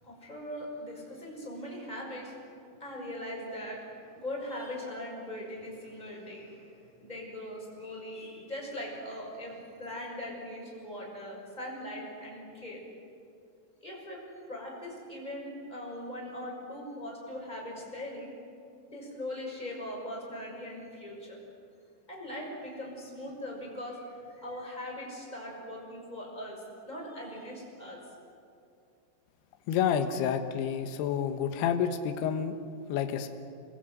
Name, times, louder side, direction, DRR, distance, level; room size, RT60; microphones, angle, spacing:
voice 1, 0.0-2.4 2.8-12.8 13.8-14.2 14.5-18.3 18.9-21.4 22.1-28.0, left 1 dB, 10° left, -2 dB, 5.7 m, -40 dB
voice 2, 29.7-32.5 32.9-33.3, left 8 dB, 70° left, 6 dB, 2.9 m, -29 dB
26.5 x 21.0 x 8.0 m, 2.5 s
omnidirectional pair, 5.6 m